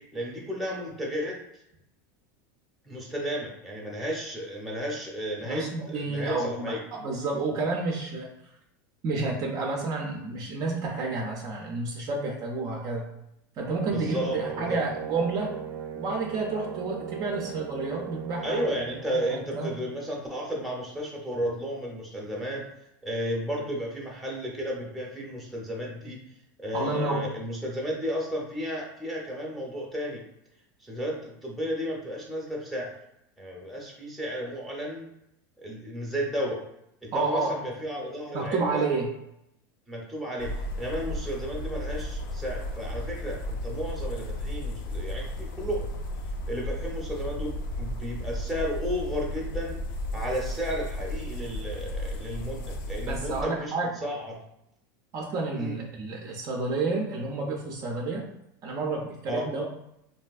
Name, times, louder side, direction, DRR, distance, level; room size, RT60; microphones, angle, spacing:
voice 1, 0.1-1.4 2.9-6.8 13.9-14.8 18.4-22.6 23.0-26.2 26.6-30.2 30.8-32.9 33.4-35.1 35.6-36.6 37.0-38.9 39.9-45.9 46.5-49.8 50.1-53.7 54.0-54.4 55.6-55.8 59.3-59.4, equal, ahead, -2 dB, 0.7 m, -33 dB
voice 2, 5.4-8.3 9.0-13.1 13.6-15.6 16.0-18.6 19.1-19.7 26.7-27.3 37.1-37.6 38.3-39.1 53.1-53.9 55.1-58.2 58.6-59.6, right 3 dB, 35° right, -1 dB, 0.4 m, -30 dB
Brass instrument, 13.6-19.1, right 8 dB, 90° right, 0.4 m, -38 dB
sound 1, 40.4-53.4, left 1 dB, 75° left, 0.5 m, -34 dB
3.2 x 2.6 x 2.3 m, 0.80 s
supercardioid pair, 140°, 11 cm